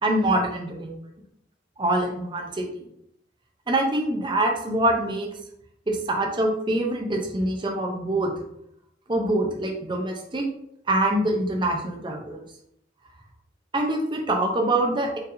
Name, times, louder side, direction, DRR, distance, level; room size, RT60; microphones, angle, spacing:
voice 1, 0.0-1.0 1.8-2.7 3.7-5.3 5.9-8.3 9.1-10.5 10.9-12.4 13.7-15.2, right 1 dB, 25° right, 2 dB, 0.5 m, -24 dB
4.4 x 3.4 x 2.5 m, 0.74 s
head